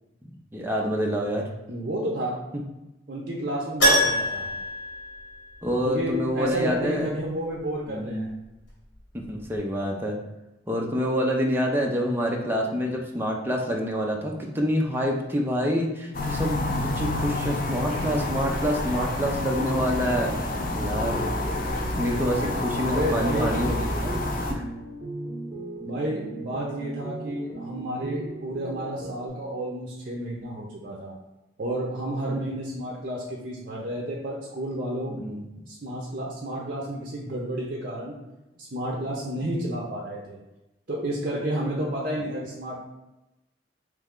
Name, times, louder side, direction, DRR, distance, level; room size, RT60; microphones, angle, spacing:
voice 1, 0.5-1.4 2.5-2.6 5.6-7.1 7.9-8.3 9.1-10.2 10.7-21.2 21.9-24.6 32.3-32.4 35.1-35.5, equal, 10° right, 0 dB, 0.5 m, -27 dB
voice 2, 1.7-2.4 3.1-4.6 5.8-8.3 22.9-23.6 25.8-31.1 31.6-35.2 35.7-38.1 38.6-40.4 40.9-42.7, right 1 dB, 50° right, -3 dB, 0.6 m, -31 dB
Keyboard (musical), 3.8-5.9 6.1-6.2 8.9-9.0 9.2-9.3, equal, 75° left, 1.4 m, -24 dB
sound 1, 16.1-24.5, left 2 dB, 50° left, 0.5 m, -29 dB
sound 2, 19.7-29.3, right 2 dB, 35° right, 1.0 m, -38 dB
3.3 x 3.2 x 3.6 m, 0.97 s
head